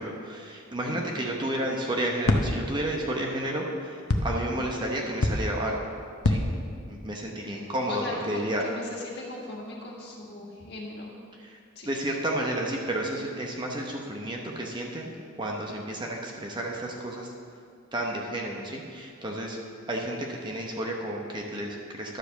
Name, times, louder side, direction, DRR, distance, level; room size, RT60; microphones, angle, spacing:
voice 1, 0.0-5.8 6.2-6.5 6.8-8.6 11.4-11.6 11.8-15.1 15.4-17.3 17.9-19.6 19.9-22.2, right 1 dB, 20° right, -1 dB, 0.9 m, -31 dB
sound 1, 2.3-2.8 4.1-4.6 5.2-5.8 6.2-6.9, left 2 dB, 85° left, 0.8 m, -26 dB
voice 2, 7.5-11.2 11.8-11.9, left 2 dB, 50° left, -3 dB, 1.7 m, -39 dB
11.5 x 5.0 x 6.9 m, 2.3 s
head